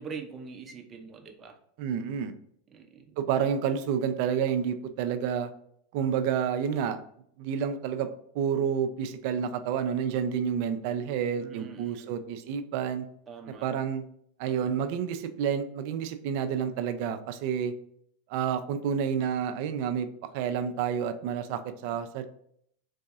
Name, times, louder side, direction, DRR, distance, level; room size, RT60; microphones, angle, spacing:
voice 1, 0.0-1.5 2.7-3.2 11.4-12.2 13.3-13.7, right 5 dB, 30° right, 4 dB, 0.7 m, -43 dB
voice 2, 1.8-2.3 3.2-5.5 5.9-7.0 7.4-8.1 8.3-13.1 13.5-14.0 14.4-17.7 18.3-20.1 20.3-22.3, right 8 dB, 60° right, 9 dB, 0.4 m, -29 dB
4.0 x 2.6 x 2.3 m, 0.68 s
hypercardioid pair, 100°, 0 cm